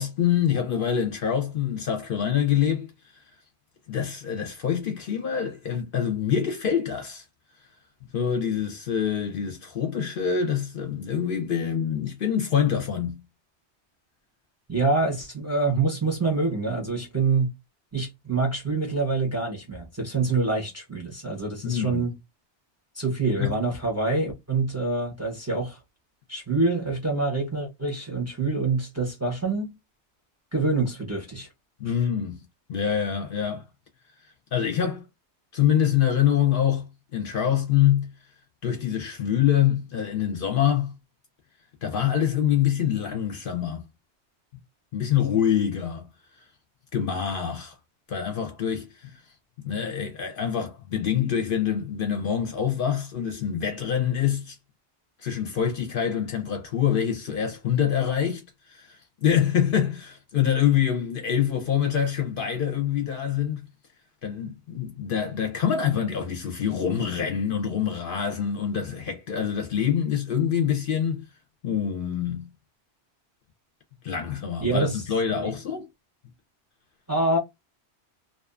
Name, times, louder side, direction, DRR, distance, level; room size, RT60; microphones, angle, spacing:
voice 1, 0.0-3.2 3.9-7.2 8.1-13.2 21.6-22.0 23.4-23.6 31.8-32.4 32.7-33.6 34.5-35.0 35.5-38.1 38.6-40.9 41.8-43.8 44.9-46.1 46.9-47.7 48.1-49.2 49.6-54.6 55.2-63.7 64.2-71.2 71.6-72.5 74.0-75.9, left 9 dB, 60° left, 0.7 m, -25 dB
voice 2, 14.7-17.5 17.9-22.1 22.9-25.8 26.3-29.7 30.5-31.5 74.6-75.0 75.4-75.5 77.1-77.4, right 3 dB, 15° right, 0.6 m, -26 dB
2.6 x 2.3 x 2.3 m
omnidirectional pair, 1.2 m